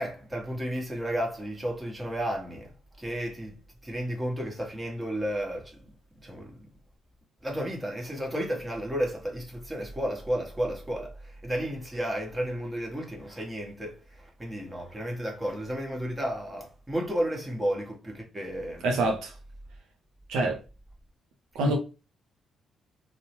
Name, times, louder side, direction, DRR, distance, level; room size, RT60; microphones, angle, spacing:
voice 1, 0.0-3.5 3.8-6.7 7.4-18.9 21.6-21.8, equal, 20° right, 1.1 m, -33 dB
voice 2, 18.8-19.3 20.3-20.6 21.5-21.8, right 2 dB, 75° right, 0.5 m, -25 dB
2.7 x 2.0 x 3.0 m
hypercardioid pair, 50°, 0 cm